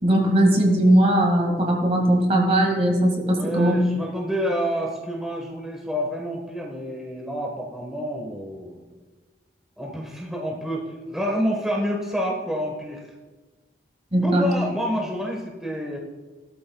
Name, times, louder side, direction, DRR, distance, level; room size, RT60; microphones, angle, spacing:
voice 1, 0.0-3.8 14.1-14.5, right 1 dB, 35° right, 2 dB, 1.9 m, -19 dB
voice 2, 3.3-8.8 9.8-13.0 14.2-16.0, equal, ahead, -2 dB, 1.3 m, -28 dB
17.5 x 12.5 x 2.3 m, 1.3 s
head